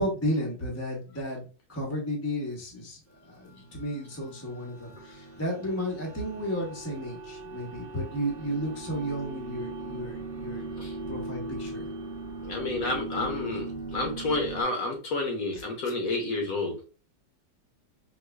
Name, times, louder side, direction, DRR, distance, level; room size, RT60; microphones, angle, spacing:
voice 1, 0.0-10.7 11.1-11.9 13.1-13.3, equal, 25° left, -2 dB, 0.3 m, -33 dB
sound 1, 3.3-14.6, right 2 dB, 55° right, 0.9 m, -39 dB
voice 2, 12.4-16.8, left 2 dB, 60° left, 2 dB, 1.0 m, -30 dB
4.6 x 2.3 x 2.2 m, 0.35 s
omnidirectional pair, 2.0 m